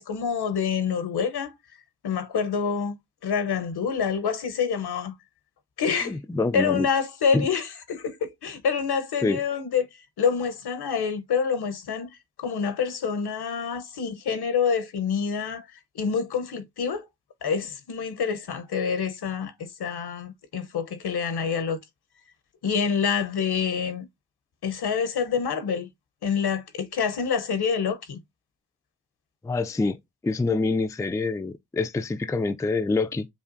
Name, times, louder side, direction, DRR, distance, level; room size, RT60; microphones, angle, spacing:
voice 1, 0.0-1.5 2.0-3.0 3.2-5.1 5.8-6.2 6.5-9.8 10.2-12.1 12.4-15.7 15.9-17.0 17.4-21.8 22.6-24.1 24.6-25.9 26.2-28.2, left 6 dB, 70° left, 0.9 m, -27 dB
voice 2, 6.0-6.9 7.3-7.4 9.2-9.4 29.4-30.0 30.2-33.3, left 3 dB, 10° left, 0.4 m, -26 dB
7.4 x 2.5 x 2.6 m
cardioid pair, 40°, 40 cm